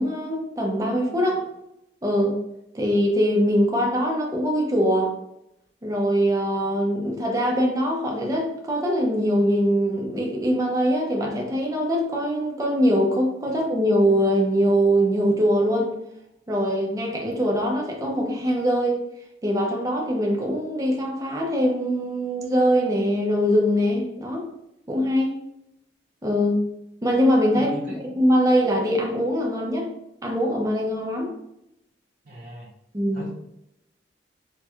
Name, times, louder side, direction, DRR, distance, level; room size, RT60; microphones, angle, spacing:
voice 1, 0.0-1.4 2.0-2.4 2.7-5.1 5.8-15.9 16.5-19.0 19.4-24.5 24.9-25.3 26.2-26.6 27.0-27.7 28.2-29.9 30.2-31.3 32.9-33.2, equal, 20° right, -1 dB, 0.5 m, -22 dB
voice 2, 27.5-28.0 32.2-32.7 33.1-33.3, equal, 50° right, -7 dB, 0.7 m, -39 dB
4.2 x 2.2 x 2.3 m, 0.82 s
head